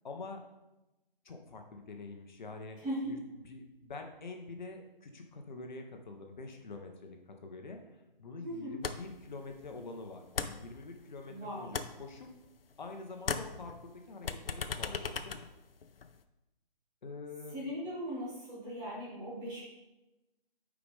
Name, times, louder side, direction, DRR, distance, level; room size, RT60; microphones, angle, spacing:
voice 1, 0.0-0.4 1.2-2.8 3.1-3.2 3.4-7.2 7.4-12.3 12.8-15.4 17.0-17.6, left 3 dB, 50° left, 4 dB, 1.2 m, -46 dB
voice 2, 2.8-3.1 8.4-8.8 11.3-11.7 17.5-19.6, equal, 15° right, -7 dB, 1.8 m, -38 dB
sound 1, 8.8-9.2 9.5-11.3 11.6-12.9 13.2-16.2, left 5 dB, 75° left, 0.7 m, -38 dB
8.6 x 5.0 x 3.5 m, 1.0 s
figure-of-eight pair, 150°, 29 cm